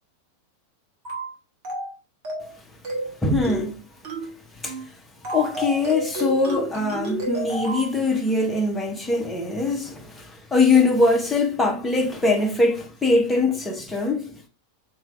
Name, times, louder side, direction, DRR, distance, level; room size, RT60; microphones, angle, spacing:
sound 1, 1.0-1.3 1.6-1.9 2.2-2.5 2.8-3.1 3.4-3.7 4.0-4.3 4.6-4.9 5.2-7.9, right 1 dB, 40° right, 1.5 m, -30 dB
voice 1, 3.2-3.8 4.6-4.8 5.3-14.4, left 3 dB, 10° left, 1.1 m, -22 dB
4.7 x 3.1 x 3.2 m
figure-of-eight pair, 90°, 0 cm